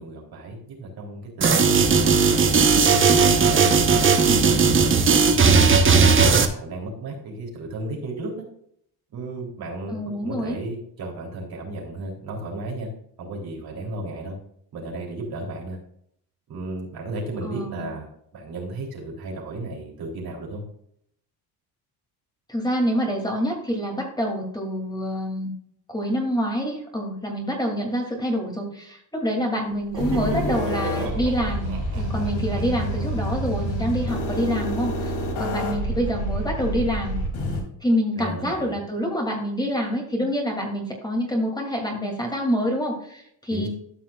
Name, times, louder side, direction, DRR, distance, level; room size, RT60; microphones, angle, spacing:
voice 1, 0.0-2.7 3.3-5.9 6.5-8.3 9.1-12.9 13.2-14.4 14.7-15.8 16.5-20.6 38.2-38.8 43.5-43.7, right 2 dB, 60° right, -1 dB, 3.4 m, -34 dB
sound 1, 1.4-6.5, right 5 dB, 30° right, 1.1 m, -17 dB
voice 2, 4.3-4.6 9.9-10.6 17.4-17.9 22.5-25.5 25.9-35.1 35.4-37.1 37.8-43.7, equal, 10° left, 0 dB, 2.8 m, -26 dB
Laughter, 29.7-34.4, right 4 dB, 90° right, 2.2 m, -38 dB
sound 2, 29.9-37.6, equal, 70° left, 3.0 m, -28 dB
13.5 x 5.8 x 2.4 m, 0.68 s
cardioid pair, 100°, 40 cm